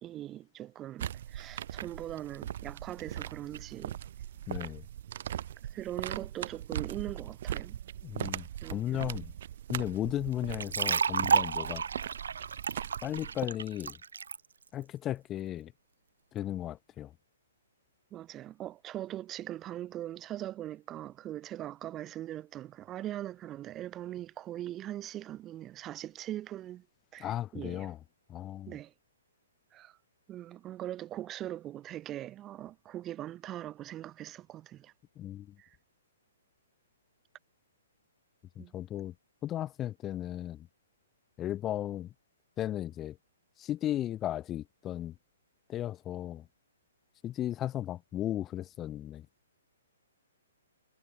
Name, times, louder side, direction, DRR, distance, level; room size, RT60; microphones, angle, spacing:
voice 1, 0.0-4.0 5.7-7.8 8.6-9.1 18.1-26.8 27.1-27.9 28.7-28.9 29.7-30.0 30.3-34.9 35.6-35.7 38.6-38.7, right 13 dB, 10° right, 3.1 m, -41 dB
sound 1, 1.0-13.5, right 11 dB, 40° right, 1.8 m, -40 dB
voice 2, 4.5-4.8 8.0-9.3 9.7-11.8 13.0-14.0 14.7-15.7 16.3-17.1 27.2-28.0 28.3-28.8 35.1-35.6 38.5-39.1 39.4-40.7 41.4-42.1 42.6-43.2 43.6-45.2 45.7-46.5 47.2-49.3, left 12 dB, 10° left, 3.2 m, -35 dB
sound 2, 10.5-14.4, right 6 dB, 80° right, 1.1 m, -30 dB
hypercardioid pair, 175°, 0 cm